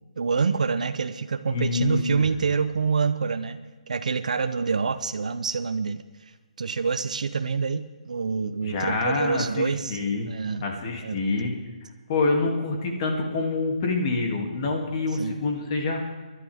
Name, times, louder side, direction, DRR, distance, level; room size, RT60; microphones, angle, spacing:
voice 1, 0.2-3.6 3.9-6.0 6.6-10.0 10.3-10.7 11.0-11.2 15.2-15.3, right 5 dB, 70° right, 9 dB, 0.8 m, -26 dB
voice 2, 1.5-2.3 8.6-10.3 10.6-11.5 12.1-16.0, left 3 dB, 40° left, 2 dB, 2.8 m, -26 dB
23.0 x 11.5 x 3.7 m, 1.3 s
hypercardioid pair, 150°, 4 cm